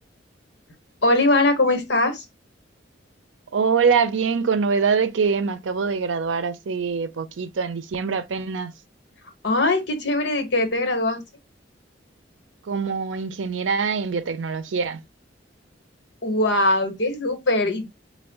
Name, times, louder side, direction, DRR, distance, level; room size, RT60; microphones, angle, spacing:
voice 1, 1.0-2.2 9.4-11.2 16.2-17.8, left 2 dB, 75° left, 1.1 m, -21 dB
voice 2, 3.5-8.7 12.7-15.0, right 5 dB, 90° right, 0.5 m, -24 dB
4.5 x 2.3 x 3.4 m
head